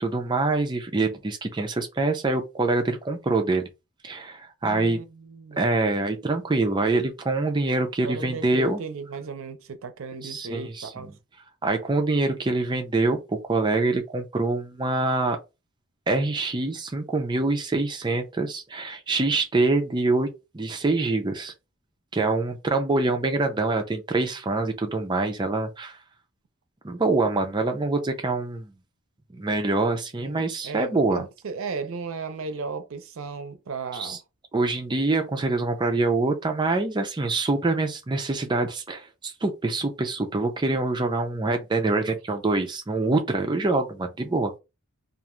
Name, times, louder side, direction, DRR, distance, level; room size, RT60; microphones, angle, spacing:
voice 1, 0.0-3.7 4.0-5.0 5.6-8.8 10.2-11.1 11.6-15.4 16.1-20.3 20.5-21.5 22.1-26.0 26.8-28.7 29.3-31.2 33.9-34.2 34.5-44.5, right 2 dB, 20° right, 0.4 m, -25 dB
voice 2, 4.6-5.7 8.0-11.1 30.1-34.2, right 4 dB, 75° right, 0.5 m, -35 dB
2.4 x 2.3 x 3.0 m
head